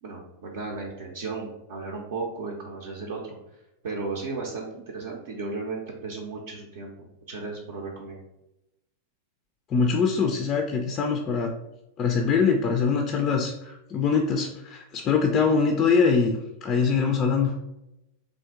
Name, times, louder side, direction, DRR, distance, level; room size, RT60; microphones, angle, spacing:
voice 1, 0.0-3.3 3.8-8.2, right 3 dB, 55° right, -2 dB, 0.6 m, -35 dB
voice 2, 9.7-11.5 12.0-17.5, left 5 dB, 30° left, 3 dB, 0.4 m, -23 dB
3.5 x 2.5 x 3.5 m, 0.90 s
figure-of-eight pair, 90°, 0 cm